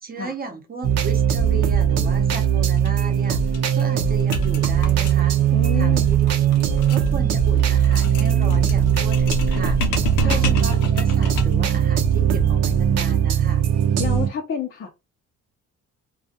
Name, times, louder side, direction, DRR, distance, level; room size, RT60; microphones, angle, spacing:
voice 1, 0.0-3.4 3.7-5.4 5.8-6.2 6.5-6.6 6.9-9.8 10.2-13.6, right 2 dB, 30° right, 0.8 m, -35 dB
sound 1, 0.8-14.3, right 9 dB, 60° right, 0.6 m, -19 dB
sound 2, 2.8-2.9 3.2-3.3 3.5-11.7, left 2 dB, 85° left, 0.7 m, -30 dB
voice 2, 5.5-6.1 10.2-10.5 14.0-15.0, left 8 dB, 40° left, 0.6 m, -29 dB
2.4 x 2.3 x 2.7 m
cardioid pair, 90°, 30 cm